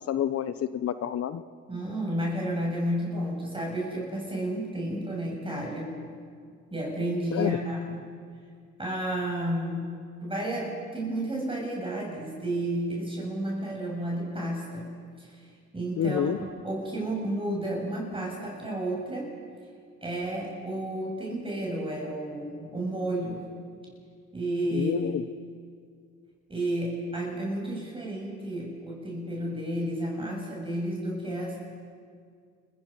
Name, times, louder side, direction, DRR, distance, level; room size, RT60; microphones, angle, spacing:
voice 1, 0.1-1.4 7.3-7.5 16.0-16.4 24.7-25.2, left 9 dB, 50° left, 13 dB, 0.8 m, -28 dB
voice 2, 1.7-6.0 6.7-8.0 8.8-9.9 10.2-14.9 15.2-15.5 15.7-19.3 20.0-23.5 24.3-25.1 26.5-31.6, right 1 dB, 15° right, -3 dB, 7.2 m, -31 dB
30.0 x 15.5 x 5.7 m, 2.2 s
supercardioid pair, 80°, 31 cm